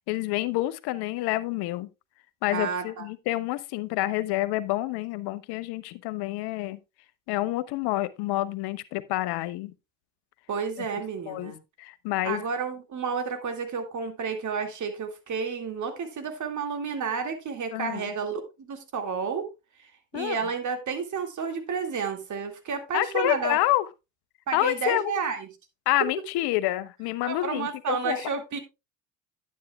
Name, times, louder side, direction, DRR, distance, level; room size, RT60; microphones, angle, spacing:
voice 1, 0.1-1.9 2.4-6.8 7.3-9.7 11.3-11.5 11.8-12.4 17.7-18.1 20.1-20.4 22.9-23.9 24.5-25.2 25.9-28.3, left 16 dB, 60° left, 0.9 m, -28 dB
voice 2, 2.5-3.1 10.5-11.6 12.2-19.5 19.8-23.6 24.5-25.5 26.0-26.1 27.3-28.6, right 5 dB, 40° right, 2.3 m, -31 dB
10.0 x 9.4 x 2.3 m
hypercardioid pair, 75°, 43 cm